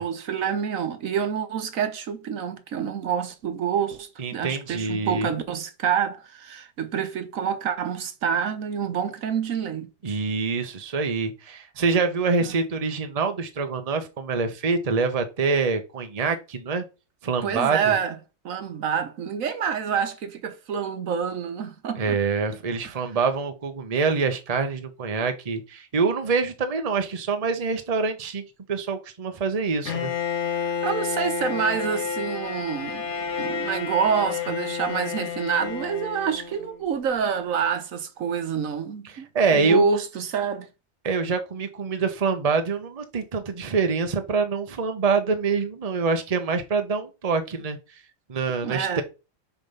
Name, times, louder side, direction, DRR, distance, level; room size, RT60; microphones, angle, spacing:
voice 1, 0.0-10.2 12.4-12.6 17.4-18.1 18.4-22.2 30.8-33.1 33.4-40.7 48.6-49.0, right 7 dB, 75° right, 1.3 m, -27 dB
voice 2, 4.2-5.3 10.0-16.8 17.2-18.0 22.0-28.4 28.7-30.1 39.1-39.9 41.0-48.0 48.3-49.0, right 4 dB, 30° right, 1.0 m, -25 dB
Bowed string instrument, 29.9-36.8, left 6 dB, 60° left, 1.4 m, -30 dB
7.2 x 3.4 x 5.5 m
omnidirectional pair, 1.4 m